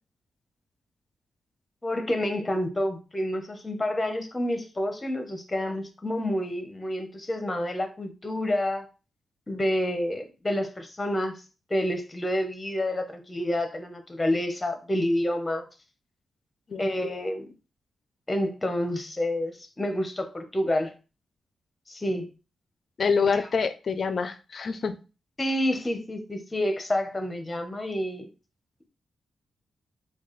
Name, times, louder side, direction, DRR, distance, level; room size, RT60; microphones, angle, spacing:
voice 1, 1.8-8.9 9.5-11.4 11.7-15.6 16.8-17.5 18.3-20.9 21.9-22.3 23.3-23.5 25.4-28.2, left 1 dB, 20° left, 0.7 m, -28 dB
voice 2, 23.0-24.9, left 5 dB, 50° left, 0.4 m, -26 dB
4.5 x 2.3 x 3.1 m
wide cardioid pair, 110°, 0 cm